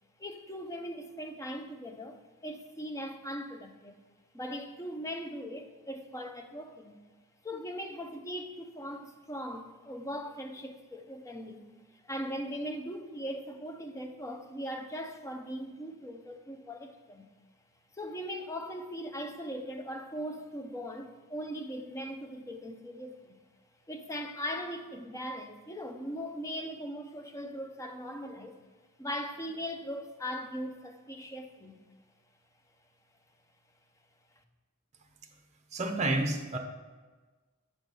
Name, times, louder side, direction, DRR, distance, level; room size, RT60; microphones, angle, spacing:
voice 1, 0.2-3.9 4.3-7.0 7.4-17.3 17.9-23.4 23.9-28.6 29.0-31.8, equal, 15° left, 0.5 m, -39 dB
voice 2, 35.7-36.6, right 2 dB, 30° right, 0.8 m, -29 dB
7.4 x 4.7 x 5.3 m
head